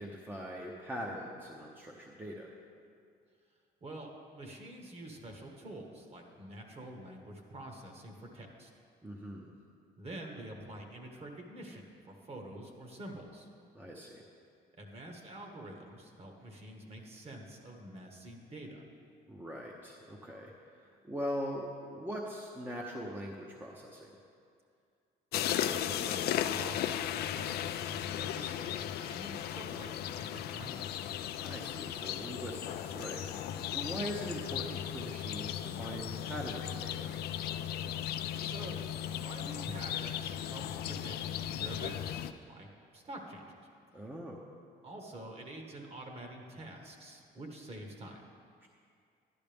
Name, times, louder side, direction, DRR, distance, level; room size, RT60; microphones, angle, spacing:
voice 1, 0.0-2.5 9.0-9.5 13.7-14.2 19.3-20.5 21.0-24.1 31.4-37.1 43.9-44.4 48.6-48.7, equal, 10° right, -1 dB, 0.8 m, -41 dB
voice 2, 3.8-8.7 10.0-13.5 14.8-18.8 25.6-31.1 38.4-38.8 39.1-43.6 44.8-48.2, right 1 dB, 35° right, 2 dB, 1.5 m, -47 dB
sound 1, 25.3-42.3, left 10 dB, 70° left, 0.4 m, -36 dB
11.5 x 11.0 x 3.5 m, 2.3 s
cardioid pair, 110°, 17 cm